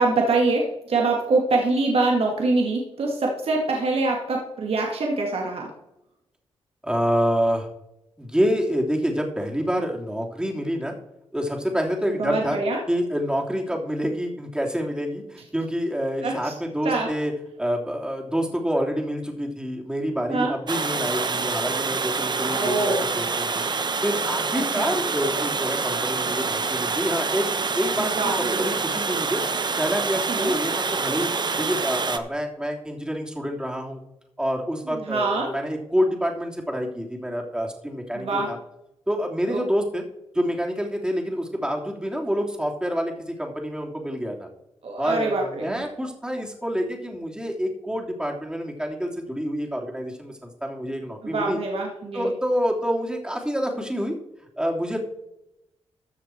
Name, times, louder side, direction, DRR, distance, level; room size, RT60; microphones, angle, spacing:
voice 1, 0.0-5.7 12.2-12.8 16.2-16.5 16.8-17.1 20.3-20.5 22.4-23.1 24.8-24.9 28.0-28.4 30.3-30.5 34.9-35.5 38.1-38.5 39.5-39.6 44.8-45.8 51.2-52.3, right 3 dB, 60° right, 0 dB, 2.1 m, -24 dB
voice 2, 6.8-7.7 8.2-10.9 11.3-12.6 12.9-17.3 17.6-23.6 24.0-27.5 27.7-29.4 29.8-31.3 31.6-34.0 34.4-38.6 39.1-40.0 40.3-44.5 45.0-51.6 52.1-54.2 54.6-55.0, equal, 5° right, 0 dB, 3.2 m, -27 dB
Water, 20.7-32.2, right 4 dB, 40° right, 1.0 m, -26 dB
14.0 x 6.6 x 4.6 m, 0.85 s
supercardioid pair, 50°, 11 cm